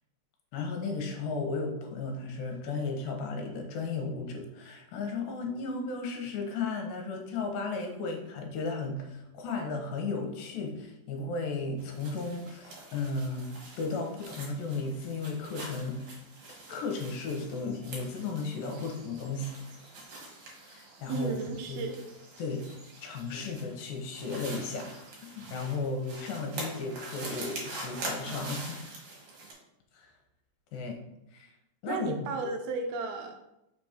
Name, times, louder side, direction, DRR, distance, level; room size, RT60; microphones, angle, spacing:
voice 1, 0.5-16.2 16.7-19.5 20.7-21.3 21.7-21.9 22.4-22.7 23.0-24.9 25.2-28.8 29.9-30.1 30.7-31.0 31.3-31.5 31.8-32.2, left 3 dB, 70° left, 3 dB, 2.6 m, -35 dB
sound 1, 11.8-29.5, right 2 dB, 60° right, 3.1 m, -44 dB
voice 2, 21.1-22.0 31.9-33.4, right 4 dB, 85° right, 4 dB, 2.7 m, -34 dB
6.0 x 4.2 x 5.0 m, 0.86 s
omnidirectional pair, 4.4 m